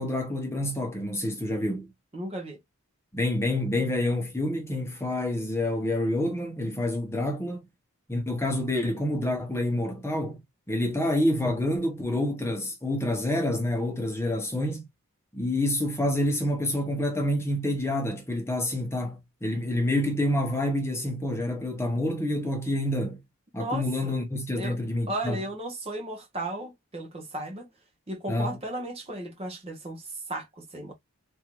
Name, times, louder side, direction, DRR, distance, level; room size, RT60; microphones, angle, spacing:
voice 1, 0.0-1.9 3.1-7.6 8.1-10.4 10.7-14.9 15.3-23.2 23.5-25.4 28.3-28.5, left 1 dB, 10° left, 0.9 m, -28 dB
voice 2, 2.1-2.6 23.5-24.2 24.6-24.8 25.1-27.7 28.1-30.9, right 1 dB, 25° right, 0.7 m, -35 dB
3.6 x 2.6 x 2.9 m
head